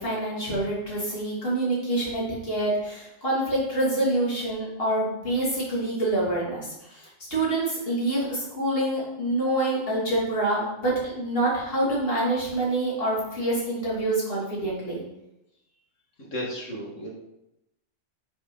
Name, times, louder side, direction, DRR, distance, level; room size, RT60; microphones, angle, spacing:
voice 1, 0.0-15.0, right 1 dB, 50° left, -6 dB, 3.2 m, -26 dB
voice 2, 16.2-17.1, equal, 75° left, -2 dB, 2.6 m, -34 dB
9.3 x 6.2 x 4.0 m, 0.88 s
omnidirectional pair, 1.3 m